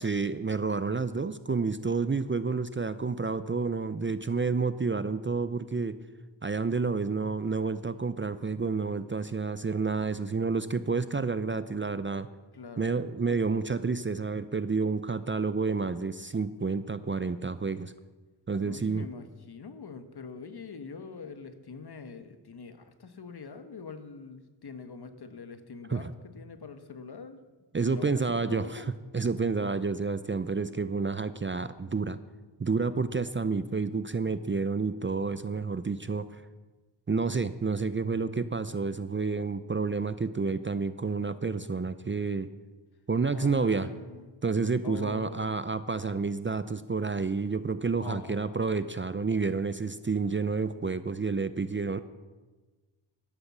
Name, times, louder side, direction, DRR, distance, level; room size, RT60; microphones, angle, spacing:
voice 1, 0.0-6.0 6.4-12.3 12.8-17.9 18.5-19.0 25.9-26.1 27.7-28.8 29.1-32.2 32.6-36.4 37.1-42.5 43.1-43.9 44.4-52.0, right 4 dB, 25° right, 13 dB, 0.6 m, -29 dB
voice 2, 12.5-13.0 13.3-13.4 18.6-27.4 27.8-28.9 43.3-44.4 44.8-45.6 48.0-48.7, left 5 dB, 55° left, 9 dB, 1.5 m, -44 dB
12.0 x 12.0 x 7.4 m, 1.3 s
cardioid pair, 75°, 47 cm